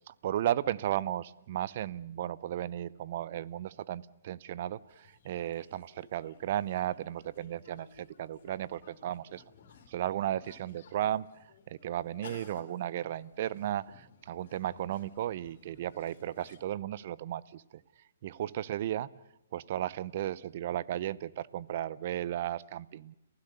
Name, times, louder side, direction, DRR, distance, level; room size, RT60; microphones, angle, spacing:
voice 1, 0.1-9.4 9.9-17.8 18.2-19.1 19.5-23.1, right 12 dB, 50° right, 21 dB, 0.7 m, -35 dB
sound 1, 4.9-16.6, left 6 dB, 60° left, 3.9 m, -57 dB
30.0 x 16.0 x 6.8 m, 0.87 s
hypercardioid pair, 145°, 0 cm